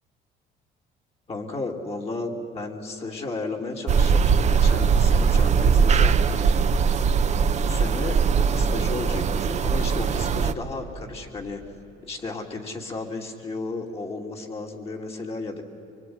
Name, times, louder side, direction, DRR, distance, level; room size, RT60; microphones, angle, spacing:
voice 1, 1.3-6.4 7.5-11.6 12.0-15.6, left 3 dB, 35° left, 0 dB, 2.9 m, -33 dB
sound 1, 3.9-10.5, right 6 dB, 45° right, 1.0 m, -20 dB
25.0 x 23.5 x 9.5 m, 3.0 s
cardioid pair, 110°, 17 cm